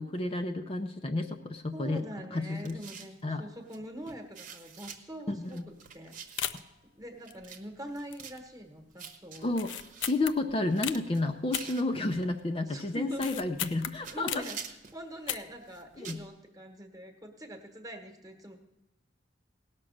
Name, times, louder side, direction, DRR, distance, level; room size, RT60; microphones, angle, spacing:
voice 1, 0.0-2.0 2.3-2.8 3.2-3.4 5.3-5.7 9.4-9.7 10.0-14.4 16.0-16.2, left 2 dB, 30° left, 4 dB, 0.6 m, -31 dB
voice 2, 1.7-6.5 6.9-9.6 12.7-13.4 14.1-14.6 14.9-18.6, equal, 20° right, 5 dB, 1.2 m, -43 dB
sound 1, 2.6-3.2 3.7-3.8 4.1-5.0 5.5-6.7 7.2-7.6 7.9-8.4 9.0-10.1 10.6-12.3 13.1-13.8 14.0-15.0 15.6-16.3, right 6 dB, 45° right, 1.0 m, -47 dB
sound 2, 5.4-5.6 5.9-6.0 6.4-6.8 7.3-7.8 8.1-8.5 8.8-8.9 9.5-11.0 11.5-12.4 12.7-14.6 15.1-15.7 15.9-16.0, left 11 dB, 85° left, 0.5 m, -37 dB
17.5 x 6.0 x 6.3 m, 0.97 s
head